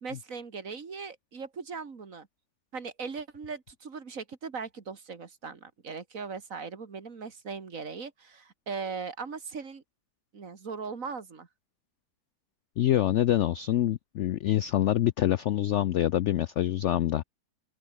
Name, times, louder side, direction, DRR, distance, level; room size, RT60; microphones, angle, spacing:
voice 1, 0.0-2.3 2.7-9.8 10.3-11.5, right 5 dB, 50° right, 2.3 m, -39 dB
voice 2, 12.8-17.2, left 12 dB, 75° left, 0.6 m, -25 dB
open air
omnidirectional pair, 1.8 m